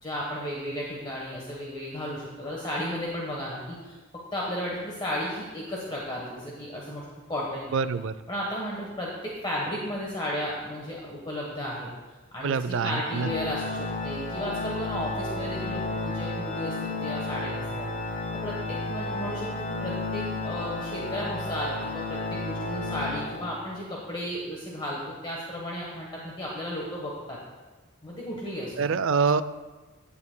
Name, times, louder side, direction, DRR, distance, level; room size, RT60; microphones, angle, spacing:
voice 1, 0.0-7.7 8.3-11.9 12.3-18.1 18.4-27.4 28.0-28.9, equal, 20° left, -4 dB, 1.1 m, -34 dB
voice 2, 7.7-8.1 12.4-13.3 28.8-29.4, right 5 dB, 60° right, 14 dB, 0.4 m, -25 dB
Organ, 13.0-23.9, left 2 dB, 40° left, 0.9 m, -32 dB
15.5 x 8.7 x 2.2 m, 1.3 s
head